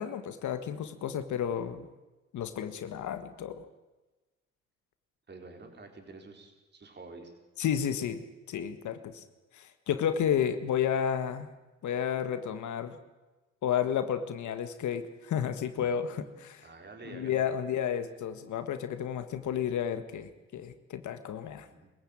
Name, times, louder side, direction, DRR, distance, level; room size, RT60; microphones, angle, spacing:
voice 1, 0.0-1.9 2.3-3.6 7.6-8.2 8.5-9.2 9.5-11.5 11.8-13.0 13.6-16.1 16.4-16.7 17.1-21.7, left 8 dB, 75° left, 9 dB, 1.7 m, -32 dB
voice 2, 5.3-7.3 16.6-17.4 21.7-21.9, right 3 dB, 35° right, 3 dB, 4.2 m, -48 dB
22.0 x 15.0 x 8.9 m, 1.1 s
cardioid pair, 90°, 30 cm